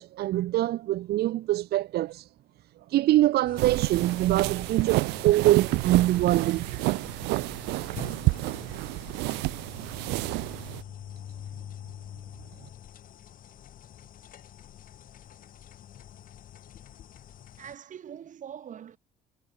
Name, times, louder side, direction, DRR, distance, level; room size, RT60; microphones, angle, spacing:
voice 1, 0.0-2.3 2.9-6.6 7.5-7.6, right 15 dB, 70° right, 1.4 m, -24 dB
sound 1, 3.5-17.8, left 10 dB, 55° left, 3.3 m, -46 dB
sound 2, 3.6-10.8, right 23 dB, 90° right, 0.4 m, -29 dB
voice 2, 17.6-19.0, right 9 dB, 50° right, 3.8 m, -43 dB
cardioid pair, 110°, 17 cm